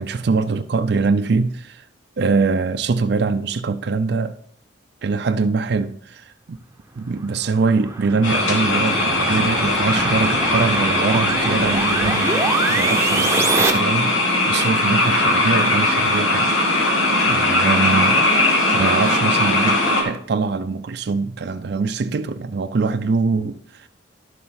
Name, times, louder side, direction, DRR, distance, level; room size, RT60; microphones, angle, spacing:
voice 1, 0.0-1.8 2.2-4.4 5.0-6.6 7.0-16.5 17.3-18.2 18.7-23.9, right 4 dB, 55° right, 0.4 m, -23 dB
sound 1, 7.2-13.7, right 3 dB, 15° right, 0.9 m, -25 dB
sound 2, 8.2-20.0, left 2 dB, 85° left, 2.6 m, -19 dB
11.5 x 6.9 x 3.9 m
head